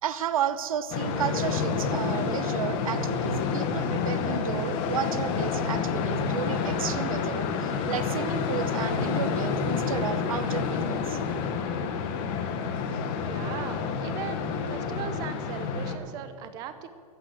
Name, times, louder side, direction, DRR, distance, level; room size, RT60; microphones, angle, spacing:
voice 1, 0.0-11.2, right 9 dB, 70° right, 13 dB, 0.9 m, -32 dB
sound 1, 0.9-16.0, left 5 dB, 25° left, 1.1 m, -29 dB
voice 2, 13.2-16.9, right 9 dB, 20° right, 11 dB, 0.7 m, -39 dB
14.5 x 9.2 x 7.7 m, 2.2 s
supercardioid pair, 170°, 19 cm